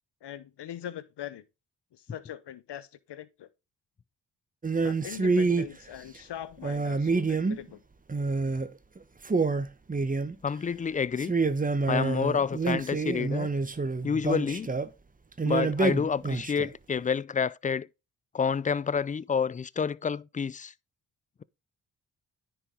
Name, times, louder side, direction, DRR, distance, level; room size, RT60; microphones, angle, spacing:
voice 1, 0.2-1.4 1.9-3.5 4.8-7.8, left 11 dB, 60° left, 1.0 m, -41 dB
sound 1, 4.6-5.7 6.6-7.7 8.1-8.7 9.0-9.1 9.2-10.5 11.2-14.9 15.4-16.7, right 4 dB, 20° right, 0.9 m, -27 dB
voice 2, 10.4-11.3 11.9-13.5 14.0-14.7 15.4-17.9 18.3-20.7, left 6 dB, 20° left, 0.3 m, -28 dB
9.9 x 4.6 x 3.7 m
supercardioid pair, 45°, 46 cm